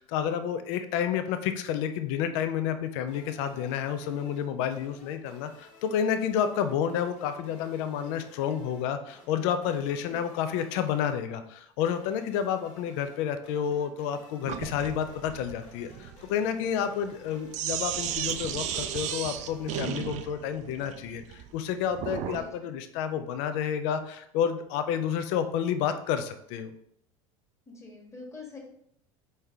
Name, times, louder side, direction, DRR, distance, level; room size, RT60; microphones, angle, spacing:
voice 1, 0.0-26.7, left 8 dB, 55° left, 9 dB, 0.5 m, -30 dB
sound 1, 3.1-20.5, left 2 dB, 40° left, 1.4 m, -55 dB
Sink (filling or washing), 14.5-22.5, right 9 dB, 45° right, 0.4 m, -35 dB
voice 2, 22.2-22.5 27.7-28.6, left 3 dB, 15° left, -1 dB, 1.4 m, -45 dB
4.3 x 3.2 x 3.4 m, 0.72 s
hypercardioid pair, 75°, 17 cm